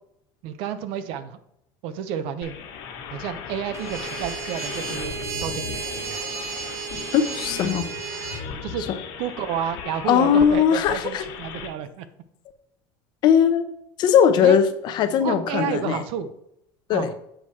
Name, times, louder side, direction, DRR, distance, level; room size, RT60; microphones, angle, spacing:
voice 1, 0.4-1.4 1.8-2.6 3.1-6.2 8.6-8.8 9.2-12.1 14.4-14.6 15.2-16.3 16.9-17.1, right 8 dB, 60° right, 12 dB, 0.7 m, -31 dB
sound 1, 2.4-11.7, left 6 dB, 70° left, 1.4 m, -37 dB
sound 2, 3.7-8.4, right 7 dB, 25° right, 0.9 m, -33 dB
voice 2, 7.1-7.9 10.1-11.2 13.2-13.6 14.0-16.0 16.9-17.1, left 8 dB, 45° left, 10 dB, 0.7 m, -19 dB
7.9 x 4.8 x 4.2 m, 0.77 s
cardioid pair, 155°, 10 cm